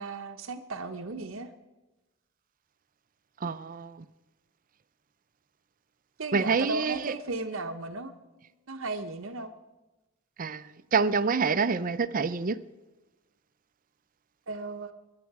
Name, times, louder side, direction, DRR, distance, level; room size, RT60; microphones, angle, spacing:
voice 1, 0.0-1.5 6.2-8.1 8.7-9.5 14.5-14.9, right 3 dB, 70° right, 0.8 m, -35 dB
voice 2, 3.4-4.0 6.3-7.1 10.4-10.6 10.9-12.6, right 5 dB, 40° right, 0.6 m, -27 dB
22.5 x 10.5 x 4.7 m
head